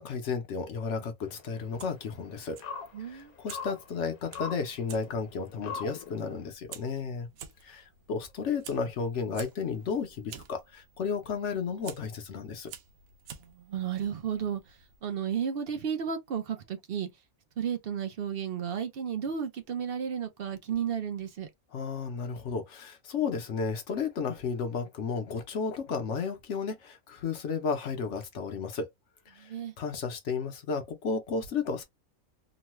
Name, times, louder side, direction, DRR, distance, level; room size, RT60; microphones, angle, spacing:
voice 1, 0.0-2.6 3.1-7.3 7.6-12.7 21.7-28.9 29.3-31.8, left 5 dB, 60° left, 1.0 m, -33 dB
sound 1, 1.2-6.5, left 6 dB, 90° left, 1.2 m, -43 dB
Fire, 1.6-15.0, right 8 dB, 80° right, 1.1 m, -51 dB
voice 2, 2.9-3.3 13.4-17.1 17.6-21.5 29.4-29.7, right 8 dB, 60° right, 0.6 m, -33 dB
3.0 x 2.2 x 2.9 m
omnidirectional pair, 1.5 m